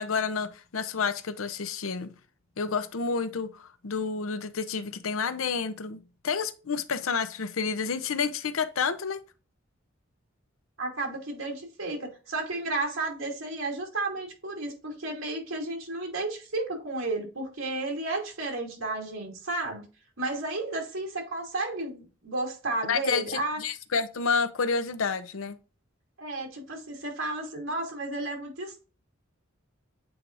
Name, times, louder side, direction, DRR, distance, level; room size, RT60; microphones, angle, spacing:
voice 1, 0.0-2.1 2.6-9.2 22.9-25.6, left 5 dB, 90° left, 0.7 m, -29 dB
voice 2, 10.8-19.8 20.2-23.6 26.2-28.8, right 2 dB, 90° right, 2.6 m, -32 dB
8.4 x 4.8 x 2.5 m
head